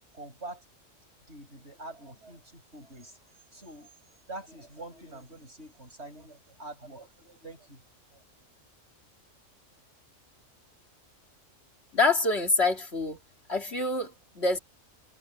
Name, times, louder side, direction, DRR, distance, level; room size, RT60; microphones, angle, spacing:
voice 1, 0.1-0.6 1.3-3.2 3.5-3.9 4.3-7.8 8.1-8.2, right 2 dB, 55° right, 7.7 m, -45 dB
voice 2, 11.9-13.2 13.5-14.6, left 3 dB, 55° left, 2.8 m, -26 dB
omnidirectional pair, 1.3 m